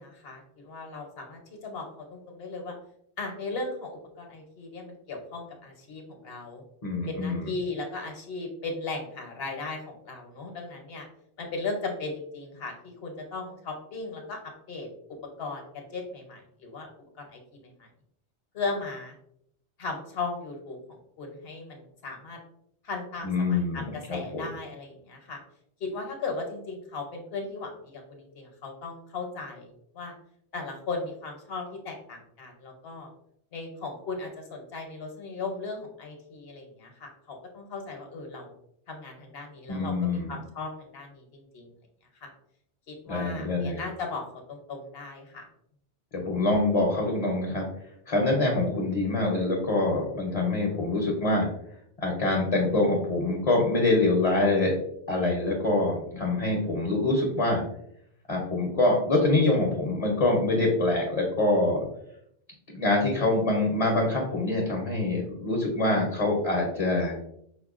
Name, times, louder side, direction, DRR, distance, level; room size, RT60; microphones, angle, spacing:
voice 1, 0.0-2.7 3.2-6.6 7.1-11.1 11.4-14.9 15.4-15.7 15.9-16.9 17.2-17.9 18.5-19.2 19.8-22.4 22.8-25.4 25.8-30.1 30.5-33.1 33.5-38.6 38.9-41.7 42.2-42.3 42.9-45.5, left 3 dB, 65° left, 3 dB, 0.9 m, -37 dB
voice 2, 6.8-7.5 23.2-24.4 39.7-40.3 43.1-43.8 46.1-47.7 48.1-51.5 52.0-54.7 55.1-57.6 58.3-61.9 62.7-67.1, left 2 dB, 40° left, 0 dB, 0.6 m, -25 dB
5.2 x 2.1 x 2.3 m, 0.73 s
omnidirectional pair, 1.1 m